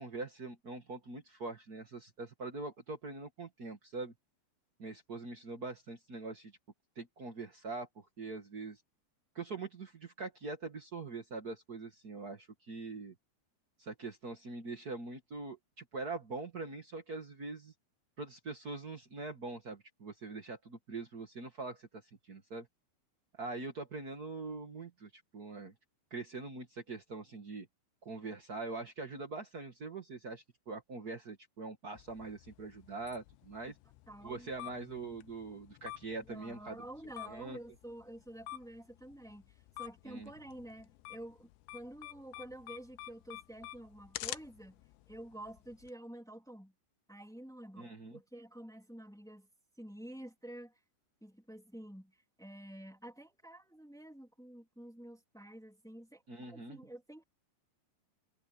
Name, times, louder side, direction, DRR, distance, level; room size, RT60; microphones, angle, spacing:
voice 1, 0.0-4.1 4.8-6.5 6.9-8.8 9.3-13.1 13.8-17.7 18.2-22.7 23.3-25.7 26.1-27.7 28.0-33.7 34.2-36.8 37.3-37.6 40.0-40.3 47.8-48.2 56.3-56.8, right 3 dB, 80° right, 0.8 m, -43 dB
sound 1, 32.0-45.9, left 16 dB, 85° left, 2.9 m, -50 dB
voice 2, 34.1-34.5 36.3-44.8 45.1-46.7 47.1-49.5 49.8-50.8 51.2-56.2 56.5-57.2, right 1 dB, ahead, 2.0 m, -49 dB
omnidirectional pair, 5.0 m